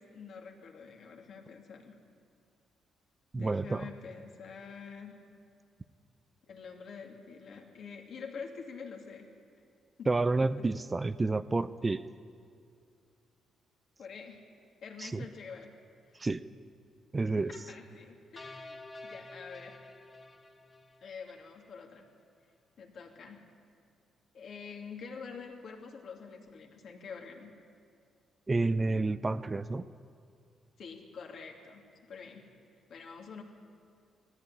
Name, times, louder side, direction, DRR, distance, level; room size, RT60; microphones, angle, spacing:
voice 1, 0.0-1.9 3.3-5.2 6.5-9.3 10.0-10.1 10.4-10.7 14.0-14.5 14.8-15.7 16.1-16.3 17.3-19.8 21.0-22.1 22.8-23.5 24.3-27.5 30.8-32.5 32.9-33.4, left 5 dB, 60° left, 2 dB, 2.7 m, -46 dB
voice 2, 3.3-3.9 10.1-12.0 15.0-15.2 16.2-16.4 17.1-17.5 28.5-29.8, right 3 dB, 20° right, 14 dB, 0.5 m, -29 dB
sound 1, 18.4-21.7, left 2 dB, 25° left, 1.3 m, -50 dB
18.5 x 14.5 x 9.7 m, 2.3 s
cardioid pair, 105°, 0 cm